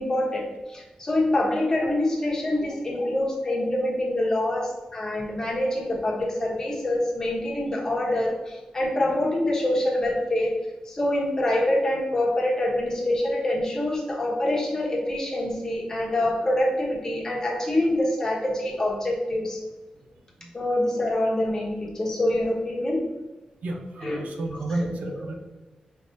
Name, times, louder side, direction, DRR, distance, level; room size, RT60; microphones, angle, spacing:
voice 1, 0.0-10.6 10.8-19.6 20.5-23.0 24.0-24.2 24.8-24.9, left 1 dB, 25° left, -3 dB, 1.1 m, -25 dB
voice 2, 23.6-25.3, right 2 dB, 85° right, 2 dB, 0.6 m, -31 dB
5.0 x 3.1 x 2.7 m, 1.2 s
wide cardioid pair, 150°, 2 cm